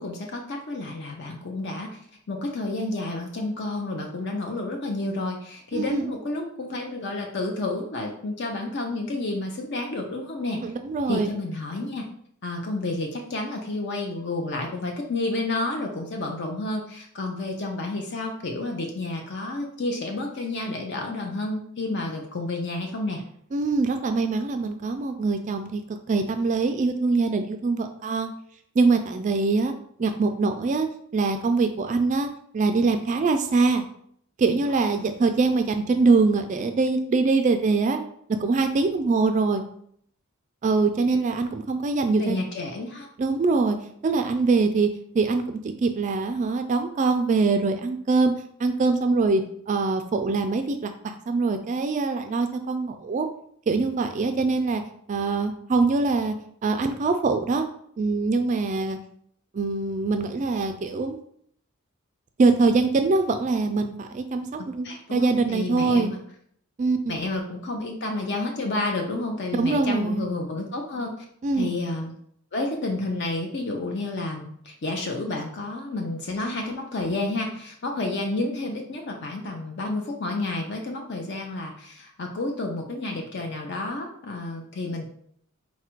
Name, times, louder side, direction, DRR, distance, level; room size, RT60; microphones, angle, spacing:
voice 1, 0.0-2.0 2.3-10.6 11.1-12.1 12.4-23.2 34.8-35.1 42.2-43.1 64.8-66.2 67.1-71.1 71.5-72.1 72.5-85.0, left 2 dB, 50° left, 2 dB, 0.6 m, -30 dB
voice 2, 5.7-6.1 10.6-11.3 23.5-28.3 28.8-29.7 30.0-30.9 31.1-32.3 32.5-33.8 34.4-38.0 38.4-39.6 40.6-42.4 43.2-43.8 44.0-44.9 45.1-48.3 48.6-49.4 49.7-53.3 53.7-54.8 55.1-56.4 56.6-57.6 58.0-59.0 59.5-61.2 62.4-66.1 66.8-67.2 69.6-70.3 71.4-71.7, right 3 dB, 35° right, 7 dB, 0.3 m, -23 dB
4.1 x 2.4 x 4.4 m, 0.65 s
head